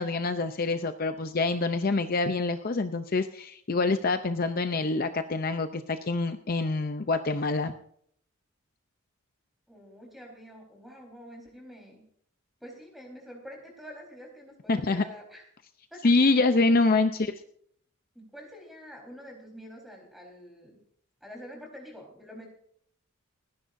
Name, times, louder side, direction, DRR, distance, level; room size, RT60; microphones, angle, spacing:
voice 1, 0.0-7.7 14.7-15.0 16.0-17.3, left 3 dB, 45° left, 9 dB, 0.6 m, -26 dB
voice 2, 9.7-12.0 12.6-15.4 15.9-16.1 16.4-16.5 17.0-17.2 18.1-20.8 21.2-22.5, equal, ahead, 0 dB, 4.2 m, -47 dB
30.0 x 10.0 x 2.6 m, 0.65 s
head